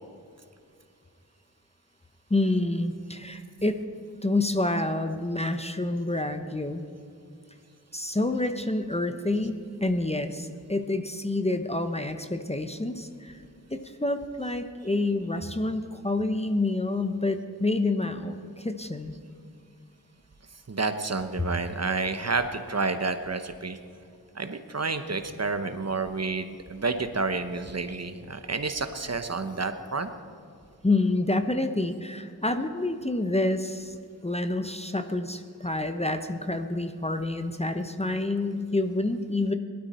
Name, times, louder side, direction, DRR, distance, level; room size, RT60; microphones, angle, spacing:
voice 1, 2.3-3.8 4.2-6.9 7.9-13.4 13.7-19.2 30.8-33.9 34.2-39.5, left 2 dB, 15° left, 7 dB, 0.8 m, -28 dB
voice 2, 20.7-23.8 24.3-30.1, right 3 dB, 40° right, 8 dB, 1.0 m, -30 dB
18.5 x 12.5 x 4.3 m, 2.4 s
wide cardioid pair, 45°, 38 cm